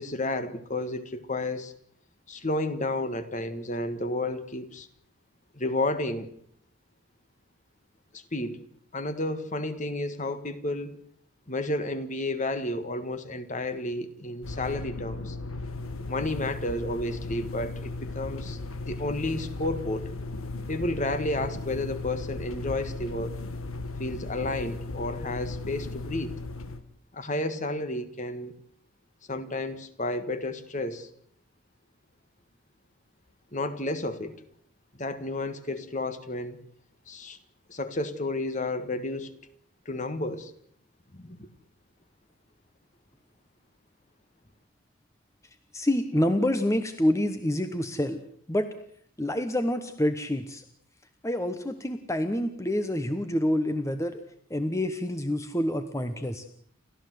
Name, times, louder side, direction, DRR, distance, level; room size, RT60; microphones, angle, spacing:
voice 1, 0.0-1.7 2.3-4.9 5.5-6.3 8.1-8.6 8.9-11.0 11.5-15.4 16.0-20.1 20.7-23.4 24.0-26.4 27.1-28.5 29.3-31.1 33.5-34.4 35.0-36.6 37.1-37.4 37.7-39.4 39.8-40.5 41.1-41.5, left 2 dB, 35° left, 11 dB, 1.6 m, -31 dB
sound 1, 14.4-26.8, left 2 dB, 75° left, 1.7 m, -36 dB
voice 2, 45.7-48.2 48.5-48.7 49.2-50.6 51.2-54.2 54.5-56.4, left 1 dB, 15° left, 9 dB, 1.1 m, -27 dB
29.5 x 14.0 x 7.9 m, 0.64 s
head